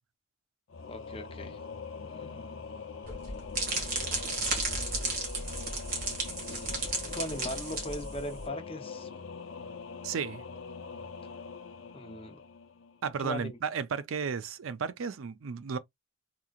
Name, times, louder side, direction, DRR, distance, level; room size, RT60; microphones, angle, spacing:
Singing / Musical instrument, 0.7-13.3, left 5 dB, 75° left, 0.6 m, -43 dB
voice 1, 0.9-1.6 2.0-2.6 6.5-6.7 7.1-9.1 11.9-12.4 13.2-13.6, left 1 dB, 30° left, 0.8 m, -39 dB
sound 1, 3.1-8.4, right 3 dB, 45° right, 1.7 m, -33 dB
voice 2, 10.0-10.4 13.0-15.8, right 6 dB, 90° right, 0.5 m, -33 dB
3.7 x 3.0 x 2.4 m
head